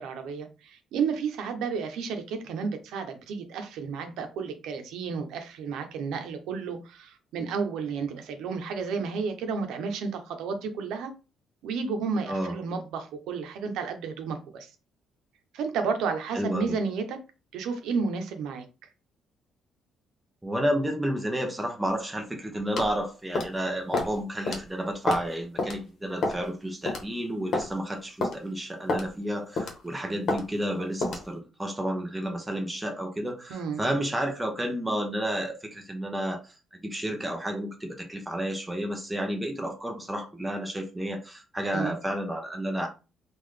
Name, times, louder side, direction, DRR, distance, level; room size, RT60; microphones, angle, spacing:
voice 1, 0.0-11.1 11.6-14.7 15.5-17.2 17.5-18.6 33.5-33.8 41.7-42.0, right 5 dB, 85° right, 0.8 m, -32 dB
voice 2, 16.3-16.8 20.4-36.5 36.8-42.9, equal, 5° right, 0.8 m, -31 dB
sound 1, 22.8-22.9 23.3-23.6 23.9-24.1 24.5-24.6 25.1-25.3 25.6-25.7 26.2-26.5 26.9-27.0 27.5-27.7 28.2-28.4 28.9-29.1 29.6-29.8 30.3-30.4 31.0-31.2, left 2 dB, 50° left, 1.0 m, -28 dB
3.8 x 2.5 x 3.2 m
cardioid pair, 145°, 0 cm